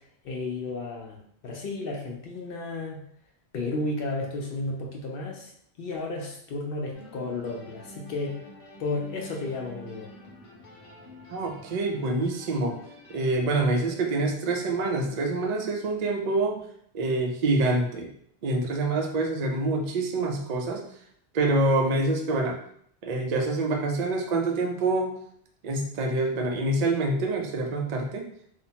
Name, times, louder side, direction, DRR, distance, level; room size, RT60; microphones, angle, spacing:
voice 1, 0.2-3.0 3.5-5.5 5.8-8.4 8.8-10.1, left 2 dB, 65° left, 0 dB, 0.7 m, -33 dB
sound 1, 6.9-16.0, left 1 dB, 90° left, 1.1 m, -49 dB
voice 2, 11.3-12.8 13.1-16.6 16.9-18.1 18.4-20.9 21.3-22.6 23.0-25.2 25.6-28.3, right 2 dB, 60° right, 1 dB, 0.4 m, -26 dB
2.8 x 2.1 x 2.7 m, 0.66 s
omnidirectional pair, 1.2 m